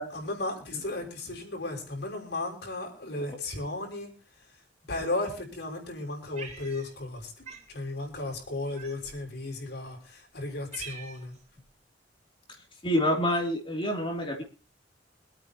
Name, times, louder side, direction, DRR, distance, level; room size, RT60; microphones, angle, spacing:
voice 1, 0.1-4.1 4.9-7.3 7.7-11.4, left 2 dB, 65° left, 1 dB, 6.0 m, -35 dB
Cat, 6.4-7.2 7.5-7.7 8.8-9.3 10.0-10.1 10.4-11.4, right 5 dB, 35° right, 4.1 m, -44 dB
voice 2, 12.8-14.4, equal, 30° left, 1 dB, 3.0 m, -27 dB
26.0 x 9.1 x 3.0 m, 0.36 s
head